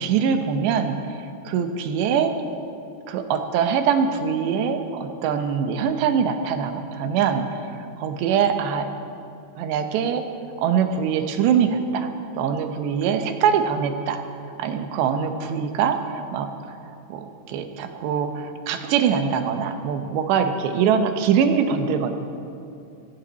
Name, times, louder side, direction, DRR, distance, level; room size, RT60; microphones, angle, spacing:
voice 1, 0.0-2.3 3.1-8.9 9.6-10.2 10.6-12.1 12.4-14.2 14.6-16.8 17.1-22.1, right 7 dB, 85° right, 7 dB, 3.1 m, -23 dB
18.0 x 15.0 x 4.0 m, 2.6 s
omnidirectional pair, 4.9 m